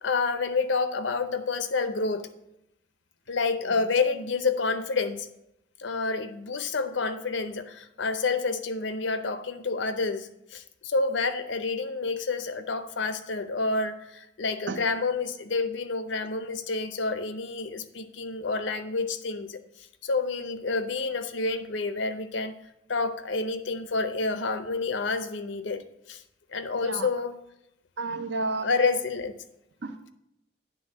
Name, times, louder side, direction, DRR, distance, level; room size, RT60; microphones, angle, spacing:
voice 1, 0.0-2.3 3.3-5.3 5.8-19.6 20.0-22.5 22.9-26.2 26.5-27.4 28.6-29.3, left 4 dB, 75° left, 11 dB, 0.6 m, -29 dB
voice 2, 26.8-27.1 28.0-28.7 29.8-30.1, right 3 dB, 70° right, 9 dB, 0.7 m, -32 dB
9.3 x 3.6 x 6.7 m, 0.84 s
head